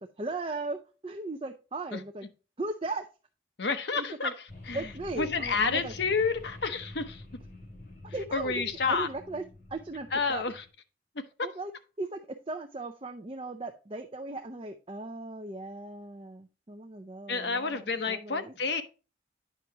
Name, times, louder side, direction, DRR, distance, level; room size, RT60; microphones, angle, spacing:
voice 1, 0.2-2.3 2.6-3.1 4.0-4.3 4.7-5.9 8.0-9.4 9.7-10.4 11.4-11.7 12.0-18.5, right 2 dB, 30° right, 0.5 m, -37 dB
voice 2, 3.6-4.3 4.7-7.2 8.3-9.1 10.1-10.6 17.3-18.8, left 4 dB, 70° left, 0.9 m, -29 dB
sound 1, 4.5-10.7, left 2 dB, 55° left, 3.0 m, -47 dB
9.2 x 5.7 x 2.8 m
head